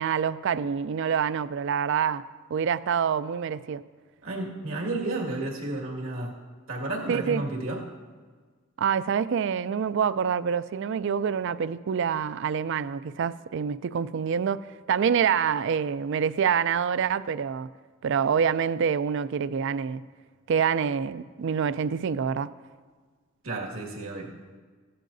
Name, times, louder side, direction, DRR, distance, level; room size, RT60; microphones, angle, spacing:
voice 1, 0.0-2.2 2.5-3.8 7.1-7.4 8.8-17.7 18.0-20.0 20.5-22.5, right 7 dB, 65° right, 0.4 m, -26 dB
voice 2, 4.2-6.4 6.7-7.9 23.4-24.4, right 2 dB, 80° right, 2.0 m, -32 dB
16.0 x 12.0 x 2.7 m
head